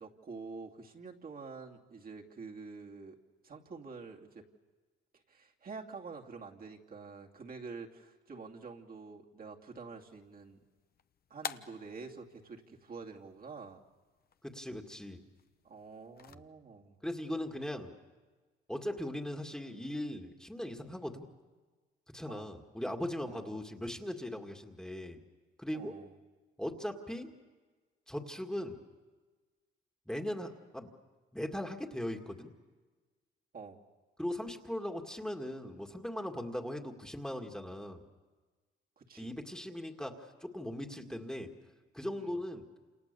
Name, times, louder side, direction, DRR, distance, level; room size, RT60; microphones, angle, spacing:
voice 1, 0.0-3.2 3.4-4.5 5.1-10.6 11.3-13.8 15.6-17.0 22.3-22.5 23.2-23.5 25.7-26.1 33.5-33.8 39.0-39.3 42.2-42.4, right 4 dB, 50° right, 0 dB, 2.6 m, -47 dB
sound 1, 10.0-16.3, left 7 dB, 50° left, 1.0 m, -50 dB
voice 2, 14.4-15.2 16.3-16.4 17.0-17.9 18.7-21.3 22.1-25.2 25.6-26.0 26.6-27.3 28.1-28.8 30.1-30.9 31.3-32.5 34.2-38.0 39.2-41.5 41.9-42.7, left 1 dB, 5° left, 3 dB, 2.1 m, -39 dB
28.5 x 28.0 x 6.9 m, 1.4 s
cardioid pair, 90°, 20 cm